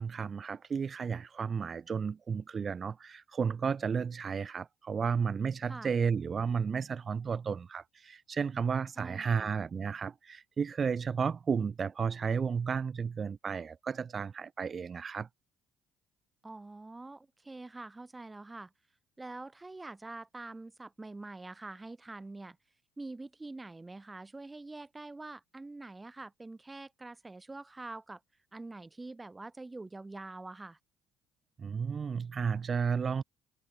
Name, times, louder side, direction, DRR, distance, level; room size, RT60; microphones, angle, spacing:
voice 1, 0.0-15.3 31.6-33.2, right 6 dB, 40° right, 3.5 m, -33 dB
voice 2, 9.0-9.5 16.4-18.7 19.2-22.6 23.0-28.2 28.5-30.8, right 2 dB, 20° right, 6.5 m, -45 dB
hypercardioid pair, 60°, 0 cm